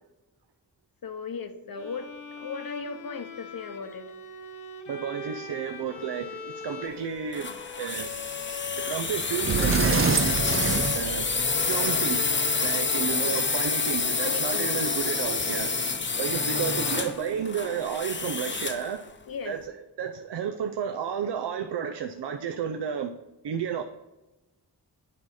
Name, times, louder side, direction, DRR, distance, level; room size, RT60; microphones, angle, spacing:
voice 1, 1.0-2.1 2.4-4.0 13.1-13.2 14.2-14.7 19.3-19.6, left 5 dB, 55° left, 9 dB, 0.9 m, -37 dB
Bowed string instrument, 1.8-17.8, left 5 dB, 80° left, 1.2 m, -42 dB
voice 2, 4.9-8.1 8.9-10.1 10.9-11.3 11.7-15.7 16.2-19.0 19.5-23.1 23.4-23.8, right 7 dB, 80° right, 7 dB, 0.6 m, -32 dB
sound 1, 7.3-18.9, left 4 dB, 30° left, 0.7 m, -28 dB
Sliding door, 8.9-9.0 9.4-11.7, right 6 dB, 35° right, 0.5 m, -26 dB
8.5 x 4.8 x 4.1 m, 1.0 s
wide cardioid pair, 85°, 41 cm